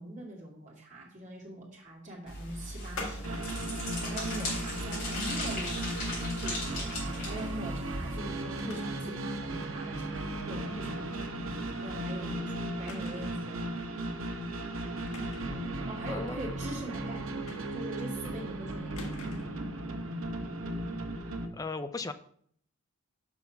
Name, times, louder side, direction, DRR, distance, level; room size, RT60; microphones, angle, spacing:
voice 1, 0.0-3.4 4.1-6.8 7.3-11.3 11.8-13.9 15.8-17.2 17.7-19.0, right 1 dB, 35° right, -3 dB, 2.2 m, -42 dB
sound 1, 2.3-8.2, left 1 dB, 45° left, 3.9 m, -37 dB
sound 2, 3.0-3.8 5.1-5.6 7.2-7.6 7.9-8.0 8.6-9.1 9.5-9.6 11.2-11.4 11.7-11.8 12.9-13.5 15.1-15.6 17.5-18.0 19.0-19.6, left 2 dB, 85° left, 1.4 m, -44 dB
sound 3, 3.2-21.5, right 1 dB, 85° right, 1.1 m, -36 dB
voice 2, 16.1-16.5 21.5-22.1, left 3 dB, 15° left, 10 dB, 0.3 m, -37 dB
6.1 x 5.4 x 5.8 m, 0.63 s
head